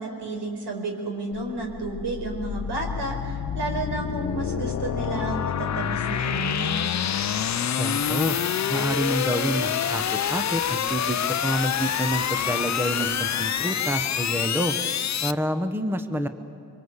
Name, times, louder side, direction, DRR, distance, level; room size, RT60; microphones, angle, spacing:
voice 1, 0.0-6.8, right 2 dB, 80° right, 3 dB, 4.7 m, -31 dB
sound 1, 1.3-15.3, left 9 dB, 45° left, 0.5 m, -27 dB
voice 2, 7.8-8.4 8.7-14.7 15.2-16.3, equal, 5° right, 9 dB, 0.9 m, -28 dB
25.5 x 24.5 x 8.1 m, 2.5 s
wide cardioid pair, 165°, 40 cm